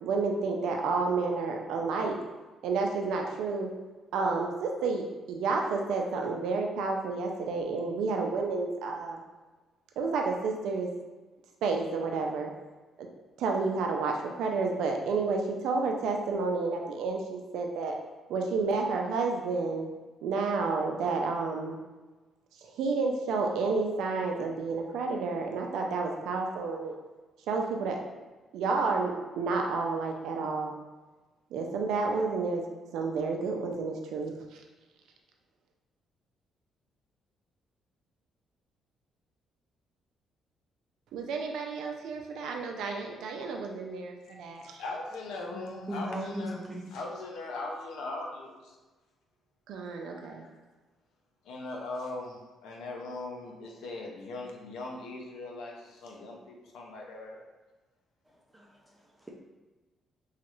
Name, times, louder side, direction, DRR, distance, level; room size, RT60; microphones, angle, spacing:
voice 1, 0.0-2.2 2.6-3.7 4.1-9.2 10.0-10.9 11.6-12.5 13.4-17.9 18.3-19.9 20.2-21.8 22.6-27.0 27.5-28.0 28.5-30.7 31.5-32.6 32.9-34.6 41.1-44.8 49.7-50.5, right 4 dB, 85° right, 2 dB, 0.4 m, -30 dB
voice 2, 44.2-46.6 46.9-48.8 50.0-50.5 51.4-57.4, left 2 dB, 85° left, 0 dB, 0.5 m, -40 dB
voice 3, 45.9-46.9 58.5-59.3, equal, 10° right, -2 dB, 0.5 m, -38 dB
3.0 x 2.4 x 3.0 m, 1.2 s
cardioid pair, 90°, 0 cm